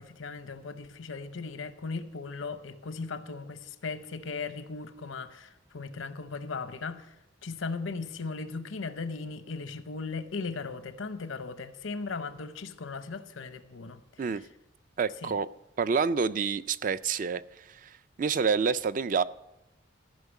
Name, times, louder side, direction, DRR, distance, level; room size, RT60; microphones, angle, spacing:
voice 1, 0.0-7.1 7.4-14.4 15.2-15.3, left 4 dB, 85° left, 0.8 m, -37 dB
voice 2, 15.0-15.5 15.8-19.2, right 5 dB, 40° right, 0.3 m, -28 dB
14.5 x 5.7 x 8.1 m
head